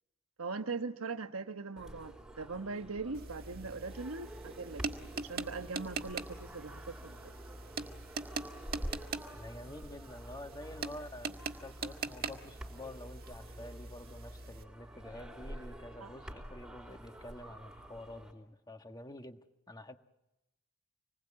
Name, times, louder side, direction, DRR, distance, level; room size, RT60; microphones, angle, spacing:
voice 1, 0.4-7.3 16.0-16.1, right 4 dB, 75° right, 1.2 m, -41 dB
sound 1, 1.8-18.3, right 1 dB, 5° right, 4.4 m, -49 dB
sound 2, 3.1-14.7, right 4 dB, 45° right, 1.8 m, -43 dB
voice 2, 9.3-19.4 19.7-20.0, left 1 dB, 20° left, 1.3 m, -48 dB
26.5 x 20.5 x 8.7 m
head